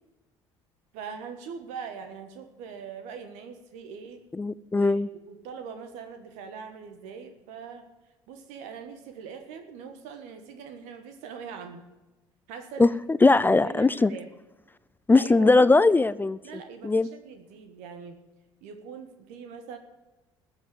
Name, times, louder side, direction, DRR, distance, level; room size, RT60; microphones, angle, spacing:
voice 1, 0.9-4.2 4.7-7.9 8.3-11.8 12.5-13.0 13.3-14.3 15.1-15.6 16.4-18.1 18.6-19.8, right 6 dB, 70° right, 7 dB, 1.4 m, -42 dB
voice 2, 4.4-5.1 12.8-14.1 15.1-16.4 16.8-17.1, left 3 dB, 15° left, 17 dB, 0.5 m, -20 dB
14.5 x 7.4 x 8.8 m, 1.1 s
hypercardioid pair, 65°, 12 cm